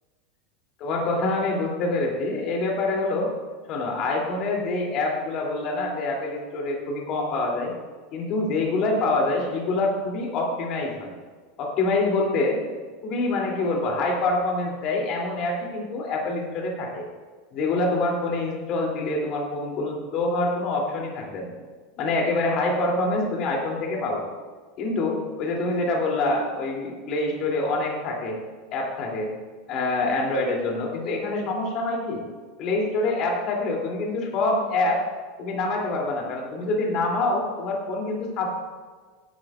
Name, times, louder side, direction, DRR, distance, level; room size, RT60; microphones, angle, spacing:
voice 1, 0.8-3.3 3.7-7.7 8.1-11.1 11.6-12.6 13.0-17.0 17.5-21.5 22.0-24.3 24.8-28.4 28.7-29.3 29.7-32.2 32.6-35.0 35.4-38.5, left 2 dB, 45° left, 0 dB, 2.8 m, -26 dB
17.0 x 11.0 x 2.4 m, 1.5 s
figure-of-eight pair, 85°, 0 cm